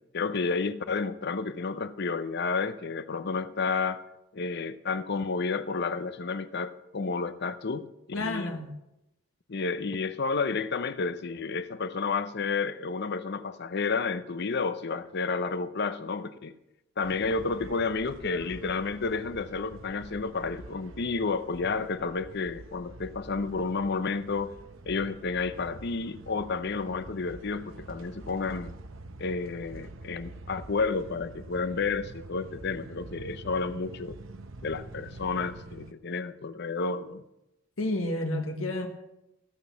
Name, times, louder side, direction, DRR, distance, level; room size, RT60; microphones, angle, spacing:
voice 1, 0.1-4.0 4.3-7.9 8.2-8.6 9.5-16.5 17.0-24.6 24.9-28.7 29.2-34.2 34.6-37.2, left 4 dB, 50° left, 0.7 m, -31 dB
voice 2, 8.1-8.8 37.8-38.9, left 1 dB, 75° left, 1.5 m, -30 dB
sound 1, 17.0-35.9, right 2 dB, 65° right, 0.9 m, -46 dB
16.0 x 6.3 x 6.9 m
head